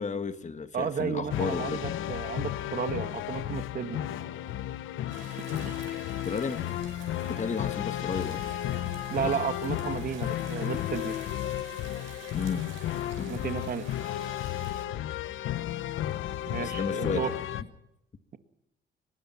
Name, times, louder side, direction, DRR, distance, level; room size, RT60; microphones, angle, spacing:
voice 1, 0.0-1.8 6.2-6.6 7.3-8.4 9.2-9.4 12.3-12.6 13.2-13.5 16.6-17.7, left 5 dB, 35° left, 1.7 m, -33 dB
voice 2, 0.7-4.0 5.6-5.8 9.1-11.2 13.3-13.9 16.5-17.3, right 7 dB, 50° right, 1.8 m, -33 dB
sound 1, 1.3-17.6, left 13 dB, 85° left, 0.9 m, -33 dB
sound 2, 5.1-14.9, right 8 dB, 80° right, 5.2 m, -49 dB
23.5 x 21.0 x 5.8 m
cardioid pair, 90°, 20 cm